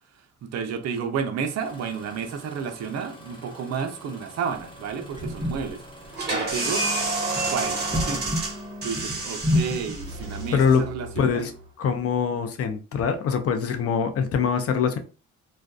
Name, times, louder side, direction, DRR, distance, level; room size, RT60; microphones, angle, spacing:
voice 1, 0.5-5.8 6.3-6.9 7.5-8.3 8.8-11.5, right 6 dB, 60° right, 0.6 m, -31 dB
Engine starting, 1.6-8.0 9.0-9.3 9.9-10.3 10.9-11.1, equal, 15° left, 0.9 m, -47 dB
sound 1, 4.5-10.8, left 1 dB, 15° right, 0.8 m, -31 dB
sound 2, 6.1-11.6, right 2 dB, 35° right, 1.2 m, -29 dB
voice 2, 10.5-10.8 11.2-11.5 11.8-15.0, left 6 dB, 50° left, 0.6 m, -23 dB
2.5 x 2.2 x 2.3 m
cardioid pair, 90°, 30 cm